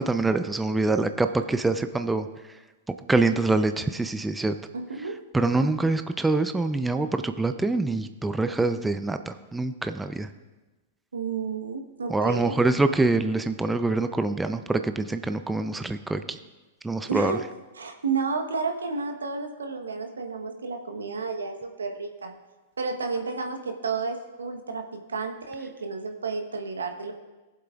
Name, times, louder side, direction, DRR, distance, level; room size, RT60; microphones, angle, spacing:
voice 1, 0.0-2.3 3.1-4.6 5.3-10.3 12.1-16.4 16.8-17.4, right 3 dB, 10° right, 8 dB, 0.5 m, -25 dB
voice 2, 4.7-5.2 11.1-12.6 17.1-17.5 17.7-22.3 22.8-27.1, right 4 dB, 80° right, 4 dB, 1.1 m, -31 dB
19.0 x 7.7 x 2.4 m, 1.2 s
hypercardioid pair, 105°, 0 cm